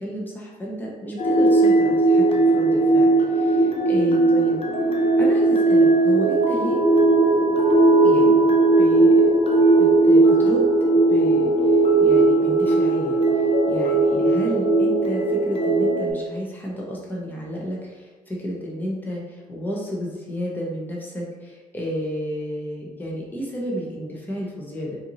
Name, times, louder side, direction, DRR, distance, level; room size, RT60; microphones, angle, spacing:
voice 1, 0.0-4.6 5.2-6.8 8.0-8.4 8.8-9.2 9.8-25.0, equal, 10° left, -4 dB, 1.1 m, -31 dB
sound 1, 1.2-16.1, right 2 dB, 40° left, 0.7 m, -18 dB
4.3 x 2.7 x 3.0 m, 1.3 s
supercardioid pair, 65°, 15 cm